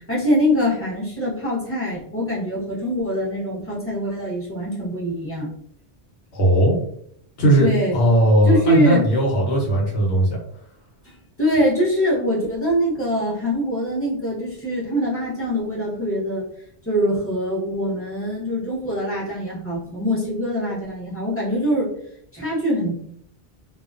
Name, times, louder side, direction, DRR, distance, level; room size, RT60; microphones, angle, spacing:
voice 1, 0.0-5.5 7.6-7.9 8.5-9.0 11.0-11.1 11.4-16.5 16.9-21.9 22.3-22.9, equal, 15° left, -5 dB, 0.7 m, -23 dB
voice 2, 6.3-6.8 7.4-10.4, right 1 dB, 85° left, -3 dB, 1.1 m, -18 dB
2.3 x 2.2 x 2.4 m, 0.66 s
omnidirectional pair, 1.1 m